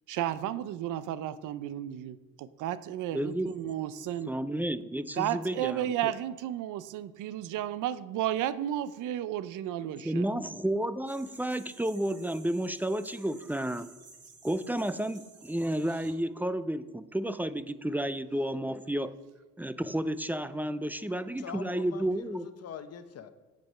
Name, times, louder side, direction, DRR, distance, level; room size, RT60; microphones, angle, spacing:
voice 1, 0.1-4.3 5.1-10.3, right 12 dB, 85° right, 14 dB, 0.6 m, -33 dB
voice 2, 3.1-3.5 4.3-5.9 10.0-13.9 14.4-19.1 19.6-22.4, right 1 dB, 5° right, 13 dB, 0.4 m, -31 dB
sound 1, 11.1-16.1, right 4 dB, 50° right, 2.7 m, -54 dB
voice 3, 21.4-23.3, left 8 dB, 55° left, 10 dB, 0.8 m, -44 dB
7.8 x 6.9 x 5.5 m, 1.2 s
cardioid pair, 90°, 30 cm